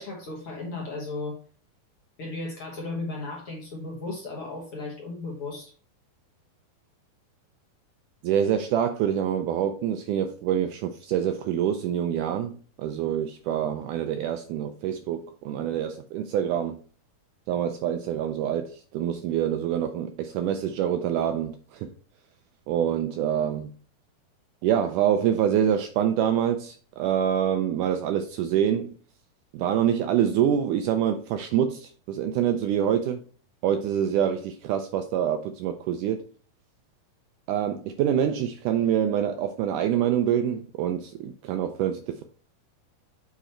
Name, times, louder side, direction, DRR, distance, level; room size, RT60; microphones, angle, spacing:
voice 1, 0.0-1.4 2.2-5.7, left 2 dB, 60° left, 1.6 m, -35 dB
voice 2, 8.2-16.8 17.5-21.9 22.7-23.7 24.6-28.9 29.5-33.2 33.6-36.2 37.5-42.2, right 9 dB, 85° right, 1.8 m, -26 dB
7.1 x 4.1 x 4.3 m
omnidirectional pair, 4.2 m